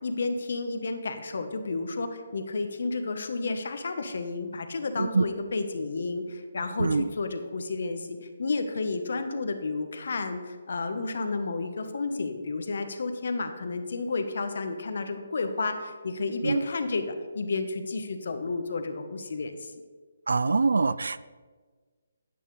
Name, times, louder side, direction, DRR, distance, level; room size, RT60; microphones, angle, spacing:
voice 1, 0.0-19.7, left 3 dB, 65° left, 8 dB, 1.1 m, -31 dB
voice 2, 20.3-21.2, right 4 dB, 80° right, 17 dB, 0.3 m, -24 dB
11.0 x 9.2 x 3.3 m, 1.5 s
hypercardioid pair, 160°, 0 cm